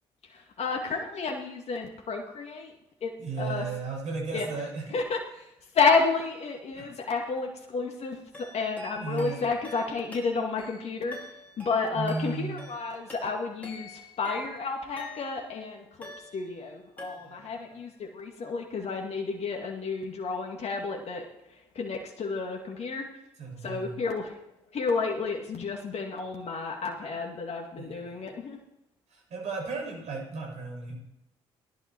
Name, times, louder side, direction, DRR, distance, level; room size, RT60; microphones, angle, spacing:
voice 1, 0.3-2.7 3.0-3.1 3.4-3.6 4.3-4.5 4.9-11.2 11.6-23.1 23.6-24.4 24.7-28.6, left 4 dB, 50° left, 2 dB, 2.2 m, -31 dB
voice 2, 3.2-5.0 6.7-6.8 9.0-9.4 11.9-12.6 17.2-17.4 23.4-23.9 27.8-28.2 29.1-31.0, right 4 dB, 55° right, 0 dB, 6.7 m, -35 dB
sound 1, 8.3-15.6 16.0-16.7 17.0-17.6, left 1 dB, 10° left, 4.7 m, -47 dB
17.5 x 11.5 x 4.6 m, 0.84 s
hypercardioid pair, 50°, 13 cm